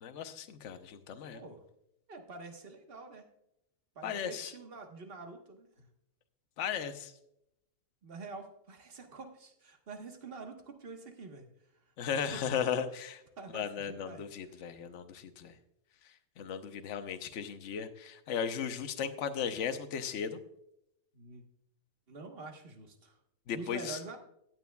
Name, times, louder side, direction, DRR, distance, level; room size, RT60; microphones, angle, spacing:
voice 1, 0.0-1.4 4.0-4.5 6.6-7.1 12.0-13.2 13.5-15.5 16.4-20.4 23.5-24.0, left 7 dB, 55° left, 9 dB, 1.0 m, -36 dB
voice 2, 1.3-1.6 2.1-3.2 3.9-5.9 8.0-11.5 12.3-12.5 13.4-14.7 21.1-21.4 22.1-23.2 23.5-24.2, right 4 dB, 40° right, 4 dB, 1.4 m, -47 dB
16.0 x 9.4 x 2.3 m, 0.80 s
omnidirectional pair, 1.7 m